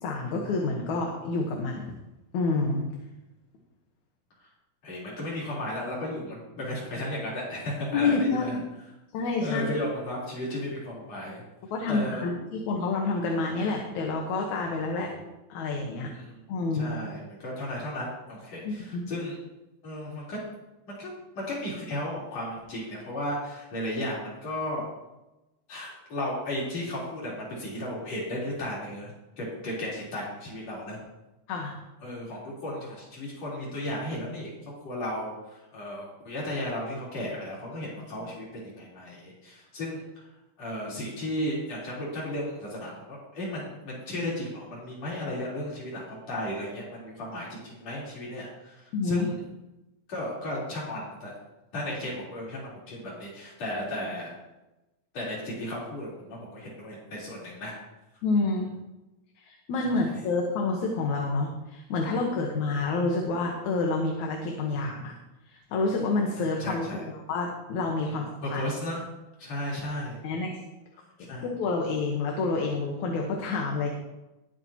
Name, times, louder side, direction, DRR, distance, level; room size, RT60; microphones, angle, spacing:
voice 1, 0.0-1.9 2.3-2.9 7.9-8.6 9.1-9.7 11.7-15.1 15.5-16.1 16.5-16.9 18.6-19.0 31.5-31.7 48.9-49.3 58.2-58.7 59.5-65.2 65.5-68.6 70.2-70.5 71.2-73.9, left 3 dB, 75° left, 0 dB, 2.6 m, -28 dB
voice 2, 4.8-8.6 9.4-11.4 11.9-12.2 16.1-16.4 16.7-19.4 19.8-20.4 20.9-24.8 25.7-29.1 29.4-31.0 32.0-34.5 34.8-40.0 40.6-49.4 50.1-51.3 51.7-54.3 55.1-57.7 59.8-60.0 66.6-67.0 68.0-69.0 69.4-70.2 71.3-71.5, left 1 dB, 60° left, -6 dB, 5.1 m, -34 dB
20.0 x 8.4 x 3.0 m, 1.0 s
omnidirectional pair, 3.4 m